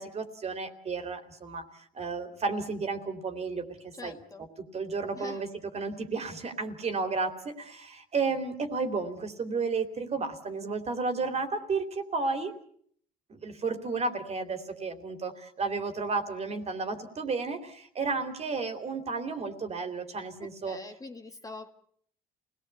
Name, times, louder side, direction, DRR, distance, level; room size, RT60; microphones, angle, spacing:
voice 1, 0.0-4.2 4.7-5.5 5.7-12.5 13.3-20.8, right 4 dB, 40° right, 7 dB, 3.2 m, -32 dB
voice 2, 3.9-4.5 5.1-5.4 20.4-21.7, left 3 dB, 20° left, 5 dB, 2.0 m, -44 dB
27.5 x 18.5 x 8.3 m, 0.63 s
cardioid pair, 110°, 17 cm